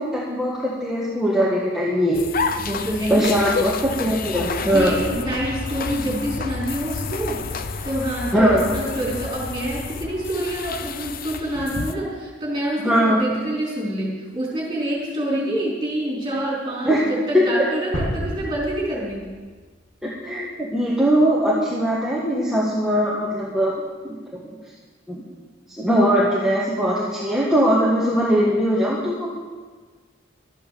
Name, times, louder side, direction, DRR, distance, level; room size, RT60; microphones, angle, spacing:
voice 1, 0.0-2.2 3.1-5.1 8.3-8.7 12.8-13.3 16.8-17.0 17.3-17.4 20.0-23.7 24.1-24.4 25.1-25.2 25.8-29.3, equal, 5° right, -6 dB, 1.5 m, -20 dB
sound 1, 2.1-11.9, left 4 dB, 45° left, 0.6 m, -30 dB
voice 2, 2.6-3.3 4.6-19.3, right 1 dB, 25° right, -5 dB, 4.3 m, -27 dB
sound 2, 17.9-19.8, equal, 70° left, 2.6 m, -30 dB
13.0 x 8.4 x 6.8 m, 1.4 s
head